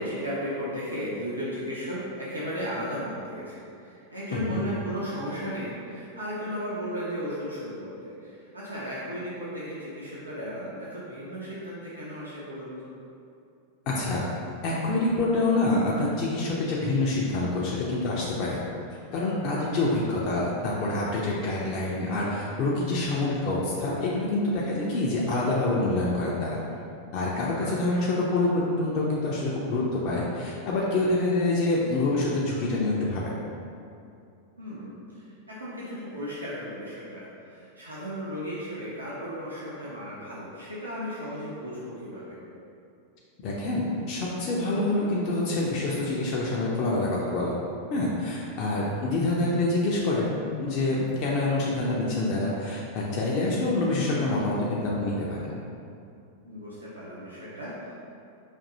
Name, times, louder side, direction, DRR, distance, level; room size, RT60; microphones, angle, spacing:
voice 1, 0.0-12.9 27.6-28.1 34.6-42.4 48.6-48.9 56.4-57.9, equal, 80° right, -8 dB, 0.7 m, -35 dB
voice 2, 4.3-4.6 13.9-14.2 14.6-18.6 19.1-26.6 27.1-33.2 43.4-47.6 47.9-55.6, left 2 dB, 40° left, -5 dB, 0.5 m, -26 dB
5.1 x 2.6 x 2.6 m, 2.6 s
figure-of-eight pair, 90°, 0 cm